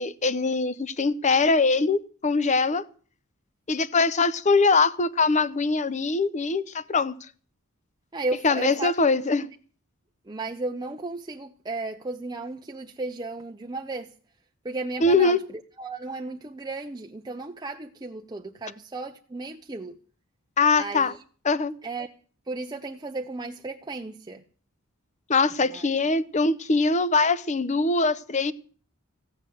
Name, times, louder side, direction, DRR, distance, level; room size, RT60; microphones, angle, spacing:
voice 1, 0.0-2.8 3.7-7.1 8.4-9.5 15.0-15.4 20.6-21.1 21.4-21.7 25.3-28.5, left 3 dB, 35° left, 0.7 m, -22 dB
voice 2, 8.1-8.9 10.3-14.1 14.6-15.4 15.8-20.0 20.8-21.2 21.8-22.1 22.5-24.4 25.6-25.9, right 3 dB, 20° right, 0.6 m, -34 dB
15.0 x 8.4 x 7.8 m
head